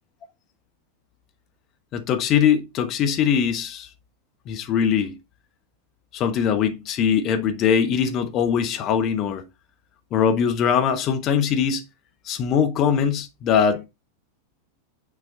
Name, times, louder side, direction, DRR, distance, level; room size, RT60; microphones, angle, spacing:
voice 1, 1.9-3.9 4.5-5.2 6.1-9.4 10.1-11.8 12.3-13.8, left 7 dB, 35° left, 1.1 m, -21 dB
7.3 x 4.0 x 3.7 m
figure-of-eight pair, 90°, 0 cm